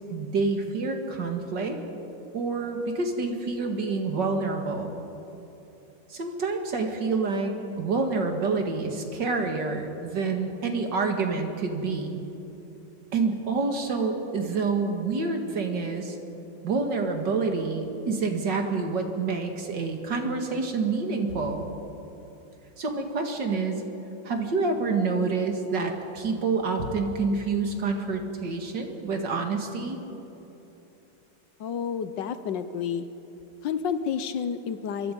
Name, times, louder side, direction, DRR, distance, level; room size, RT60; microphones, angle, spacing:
voice 1, 0.1-1.8 2.3-4.9 6.1-7.5 7.8-12.2 13.1-16.2 16.6-21.7 22.8-23.8 24.2-30.0, right 4 dB, 60° right, 4 dB, 2.5 m, -27 dB
voice 2, 31.6-33.1 33.6-35.1, left 7 dB, 70° left, 11 dB, 1.4 m, -30 dB
25.5 x 23.0 x 5.4 m, 3.0 s
omnidirectional pair, 2.1 m